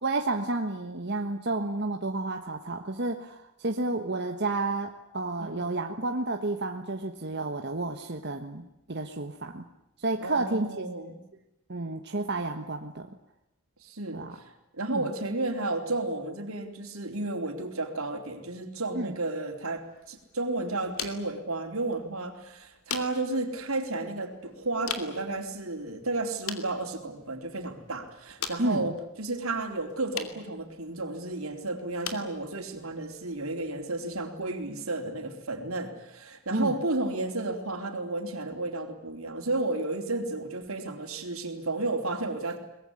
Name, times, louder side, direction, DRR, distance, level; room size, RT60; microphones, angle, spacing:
voice 1, 0.0-9.6 10.0-10.7 11.7-13.1 14.1-14.3 14.9-15.1 18.9-19.1 28.6-28.9 36.5-36.8, right 2 dB, 50° right, 4 dB, 1.5 m, -31 dB
voice 2, 10.2-11.2 13.8-42.6, right 2 dB, 80° right, 5 dB, 4.0 m, -32 dB
sound 1, 19.7-34.8, left 7 dB, 85° left, 2.8 m, -44 dB
23.5 x 21.0 x 9.8 m, 0.86 s
head